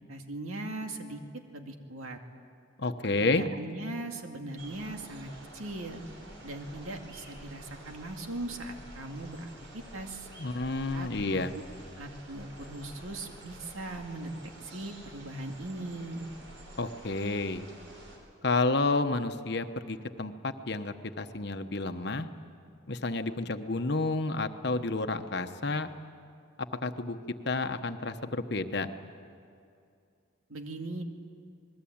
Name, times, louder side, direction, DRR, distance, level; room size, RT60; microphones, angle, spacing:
voice 1, 0.1-1.2 1.5-2.2 3.0-6.0 6.4-10.3 10.9-11.6 12.0-16.3 30.5-31.0, right 2 dB, 90° right, 4 dB, 2.3 m, -39 dB
voice 2, 2.8-3.4 10.4-11.5 16.8-17.6 18.4-22.3 22.9-25.9 26.8-27.2 27.4-28.9, left 3 dB, 55° left, 8 dB, 1.1 m, -30 dB
sound 1, 4.6-18.2, right 1 dB, 65° right, 5.6 m, -49 dB
27.0 x 20.5 x 8.8 m, 2.4 s
head